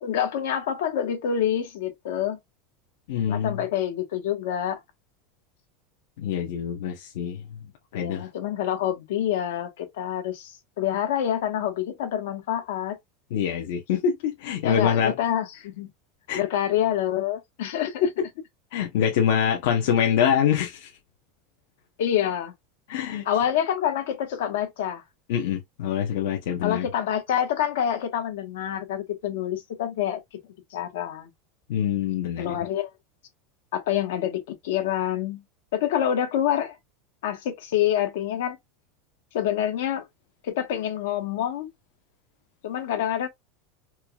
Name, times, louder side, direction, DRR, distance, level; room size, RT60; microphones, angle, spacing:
voice 1, 0.0-2.4 3.3-4.8 7.9-10.5 10.8-13.0 14.6-15.9 16.4-18.1 22.0-22.5 23.2-25.0 26.6-30.2 30.7-31.3 32.4-32.9 33.7-35.4 35.7-36.8 37.2-38.6 39.3-40.1 40.4-41.7 42.6-43.3, left 10 dB, 80° left, 1.2 m, -27 dB
voice 2, 3.1-3.6 6.2-7.4 7.9-8.3 13.3-15.1 16.3-16.4 18.7-20.9 22.9-23.2 25.3-26.9 31.7-32.6, left 8 dB, 65° left, 0.8 m, -25 dB
4.6 x 2.3 x 2.3 m
supercardioid pair, 170°, 0 cm